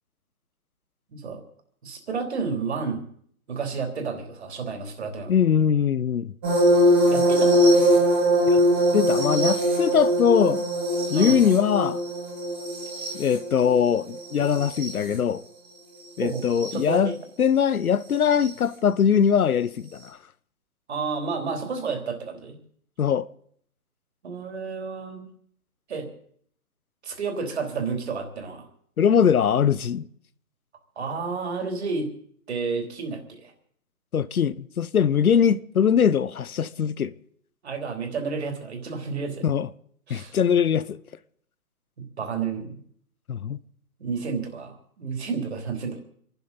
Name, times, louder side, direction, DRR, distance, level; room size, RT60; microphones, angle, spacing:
voice 1, 1.1-1.4 1.8-3.0 3.5-5.3 7.1-7.6 11.1-11.5 16.2-17.1 20.9-22.6 24.2-25.2 25.9-26.1 27.0-28.6 30.9-32.1 32.5-33.5 37.6-39.4 40.1-40.3 42.0-42.8 44.0-46.0, right 5 dB, 45° right, 3.4 m, -31 dB
voice 2, 5.3-6.3 8.5-8.6 8.9-10.6 11.1-12.0 13.1-15.4 16.2-17.1 17.4-20.2 23.0-23.3 29.0-30.1 34.1-37.1 39.4-39.7 40.1-41.0 43.3-43.6, left 7 dB, 65° left, 0.8 m, -21 dB
sound 1, 6.4-15.1 16.4-16.7 18.4-18.5, equal, 5° right, 1.0 m, -22 dB
28.5 x 12.0 x 4.1 m
hypercardioid pair, 170°, 46 cm